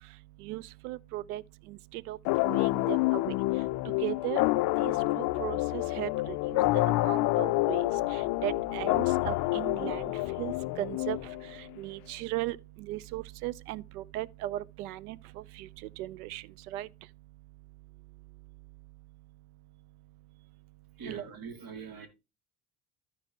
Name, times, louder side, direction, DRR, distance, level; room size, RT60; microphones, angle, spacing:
voice 1, 0.4-1.4 1.7-1.8 2.1-2.2 2.4-3.3 4.0-4.4 4.8-6.6 7.0-7.9 8.4-10.1 10.4-11.2 11.8-12.6 12.9-15.2 15.6-15.7 16.0-16.4 16.7-16.9 21.0-21.2, right 15 dB, 75° right, 0.6 m, -36 dB
sound 1, 2.3-11.7, left 20 dB, 55° left, 0.5 m, -28 dB
voice 2, 21.0-22.1, right 5 dB, 50° right, 2.3 m, -42 dB
14.5 x 4.8 x 2.8 m
hypercardioid pair, 65°, 44 cm